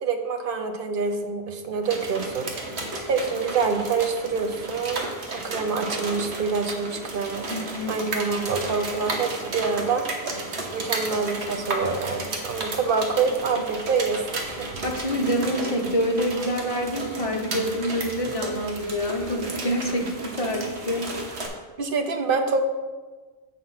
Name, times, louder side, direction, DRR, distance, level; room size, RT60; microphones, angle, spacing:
voice 1, 0.0-2.5 3.1-7.4 7.9-10.0 10.7-14.7 19.9-20.0 21.8-22.6, right 5 dB, 60° right, 6 dB, 0.9 m, -26 dB
sound 1, 1.8-21.5, right 2 dB, 80° right, 1.3 m, -33 dB
voice 2, 7.5-7.9 14.8-21.1, equal, 35° left, 1 dB, 1.0 m, -26 dB
7.5 x 4.1 x 5.6 m, 1.3 s
omnidirectional pair, 1.1 m